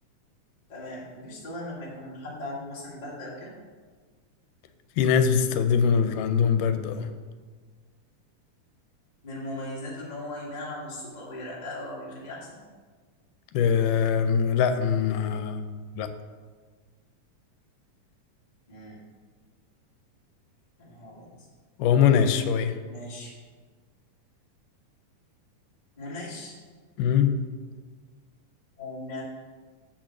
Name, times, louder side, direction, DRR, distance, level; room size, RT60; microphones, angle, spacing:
voice 1, 0.7-3.5 9.2-12.6 18.7-19.0 20.8-21.3 22.9-23.3 26.0-26.5 28.8-29.2, left 1 dB, 20° left, -6 dB, 1.3 m, -38 dB
voice 2, 5.0-7.1 13.5-16.1 21.8-22.8 27.0-27.3, left 7 dB, 85° left, 9 dB, 2.1 m, -22 dB
7.2 x 4.9 x 5.8 m, 1.5 s
omnidirectional pair, 3.7 m